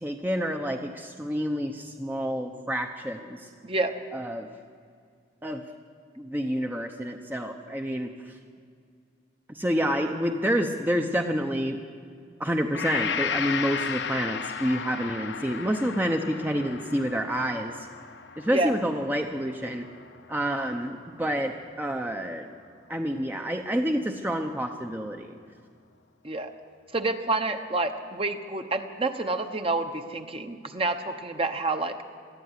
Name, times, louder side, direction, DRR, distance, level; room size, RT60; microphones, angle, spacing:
voice 1, 0.0-3.5 4.1-4.5 5.4-5.6 6.2-8.3 9.5-11.8 12.4-17.9 18.4-19.9 20.3-22.5 22.9-25.3, equal, 10° right, 4 dB, 0.8 m, -28 dB
Gong, 12.7-20.8, left 6 dB, 70° left, 0.9 m, -34 dB
voice 2, 26.9-32.0, right 2 dB, 30° right, 7 dB, 1.1 m, -28 dB
21.0 x 13.5 x 9.8 m, 2.2 s
head